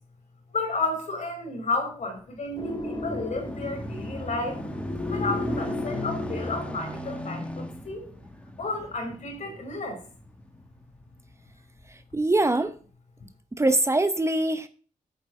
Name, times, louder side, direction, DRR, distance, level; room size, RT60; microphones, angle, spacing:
voice 1, 0.5-4.6 5.1-8.1 8.6-10.0, left 3 dB, 60° left, 2 dB, 5.2 m, -32 dB
sound 1, 2.4-11.2 11.8-11.9, equal, 10° left, 2.0 m, -37 dB
sound 2, 2.6-7.2, left 2 dB, 35° left, 3.5 m, -35 dB
voice 2, 12.1-12.7 13.6-14.7, right 2 dB, 20° right, 10 dB, 0.9 m, -23 dB
8.9 x 6.6 x 8.2 m, 0.41 s
cardioid pair, 80°, 14 cm